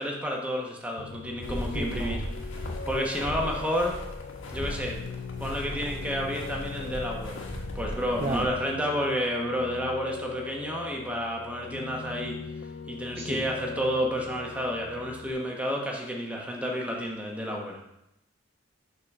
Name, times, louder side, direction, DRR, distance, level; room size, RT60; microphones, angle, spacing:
voice 1, 0.0-2.2 2.9-4.0 4.5-5.0 5.4-7.4 7.7-12.3 12.9-17.8, equal, 5° right, -1 dB, 1.1 m, -30 dB
Piano, 1.0-15.3, left 6 dB, 65° left, 0.4 m, -41 dB
sound 1, 1.4-8.4, equal, 85° left, 1.3 m, -37 dB
voice 2, 1.7-2.2 8.2-8.5 13.1-13.4, right 2 dB, 30° right, 2 dB, 0.4 m, -33 dB
6.5 x 4.0 x 5.9 m, 0.84 s
head